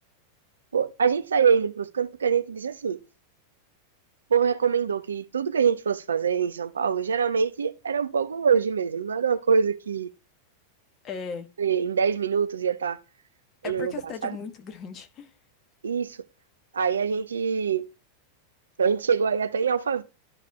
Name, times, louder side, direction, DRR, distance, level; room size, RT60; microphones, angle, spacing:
voice 1, 0.7-3.0 4.3-10.1 11.6-13.0 13.6-13.9 14.2-14.4 15.8-16.2 16.7-17.9 18.8-20.0, right 6 dB, 70° right, 0.7 m, -24 dB
voice 2, 11.0-11.5 13.6-15.3, left 6 dB, 30° left, 1.5 m, -37 dB
12.0 x 4.7 x 3.5 m
figure-of-eight pair, 90°, 0 cm